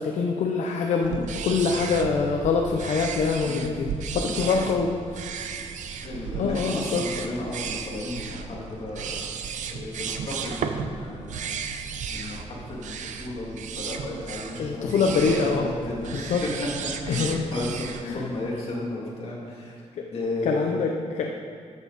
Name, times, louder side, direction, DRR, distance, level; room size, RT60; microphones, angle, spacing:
voice 1, 0.0-5.5 6.4-7.0 14.6-15.7 16.1-16.4 17.1-17.5 18.0-18.2 20.0-20.1 20.4-21.3, left 5 dB, 70° left, 2 dB, 0.7 m, -25 dB
sound 1, 1.0-18.0, right 6 dB, 80° right, 0.7 m, -34 dB
voice 2, 4.3-4.6 6.0-9.2 9.7-11.6 12.1-12.9 13.2-16.1 16.4-16.5 16.8-19.7 20.1-20.8, left 2 dB, 50° left, -5 dB, 2.7 m, -33 dB
13.5 x 7.3 x 4.1 m, 2.4 s
cardioid pair, 130°, 13 cm